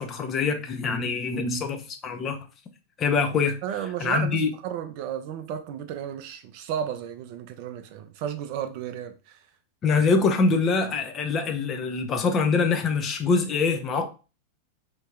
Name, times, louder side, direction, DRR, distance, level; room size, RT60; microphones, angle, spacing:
voice 1, 0.0-2.4 3.0-3.6 4.0-4.5 9.8-14.1, left 4 dB, 25° left, 0.6 m, -24 dB
voice 2, 3.6-9.4, right 9 dB, 45° right, 0.5 m, -33 dB
3.0 x 2.7 x 3.6 m
figure-of-eight pair, 90°, 0 cm